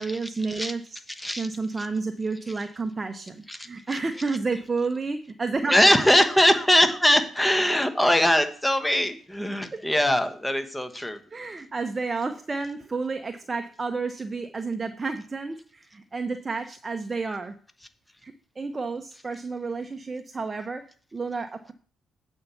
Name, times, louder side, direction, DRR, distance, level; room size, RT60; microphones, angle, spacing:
voice 1, 0.0-1.0 1.4-5.7 9.7-9.8 11.3-17.6 18.2-20.8 21.1-21.7, right 4 dB, 25° right, 7 dB, 0.7 m, -31 dB
voice 2, 1.2-1.5 1.8-1.9 3.5-4.0 5.7-11.2, left 1 dB, 5° left, 9 dB, 1.1 m, -22 dB
8.5 x 4.5 x 6.9 m, 0.43 s
cardioid pair, 90°, 0 cm